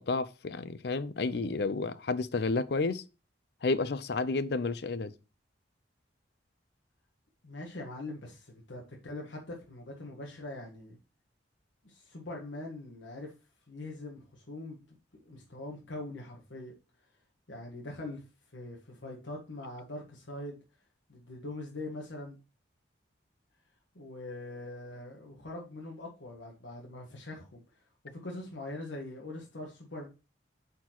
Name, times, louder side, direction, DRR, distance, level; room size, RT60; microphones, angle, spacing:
voice 1, 0.0-3.0 3.6-5.1, left 3 dB, 60° left, 0.5 m, -31 dB
voice 2, 7.4-11.0 11.8-13.3 13.7-16.7 17.5-18.2 18.5-20.6 21.1-22.4 23.9-30.1, left 2 dB, 85° left, 1.4 m, -43 dB
8.2 x 4.3 x 3.0 m
head